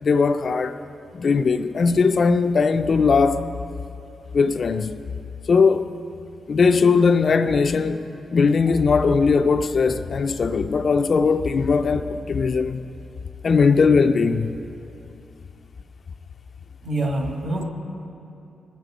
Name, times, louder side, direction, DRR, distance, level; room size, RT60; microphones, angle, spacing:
voice 1, 0.0-0.8 1.1-3.4 4.3-5.0 5.5-5.9 6.5-8.1 8.3-12.9 13.4-14.5, left 5 dB, 40° left, 0.4 m, -19 dB
voice 2, 16.8-17.7, right 2 dB, 45° right, 1.9 m, -25 dB
18.5 x 8.2 x 5.0 m
wide cardioid pair, 155°, 0 cm